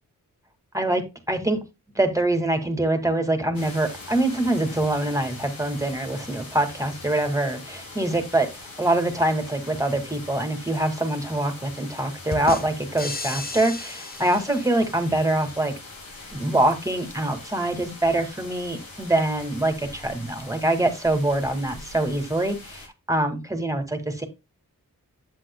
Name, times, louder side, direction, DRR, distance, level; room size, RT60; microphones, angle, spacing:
voice 1, 0.7-1.6 2.0-15.7 16.3-24.3, right 1 dB, 10° right, 6 dB, 2.1 m, -24 dB
sound 1, 3.5-22.9, left 3 dB, 85° left, 2.8 m, -42 dB
sound 2, 12.3-15.1, left 3 dB, 25° left, 1.1 m, -35 dB
7.8 x 7.6 x 2.2 m, 0.25 s
cardioid pair, 45°, 34 cm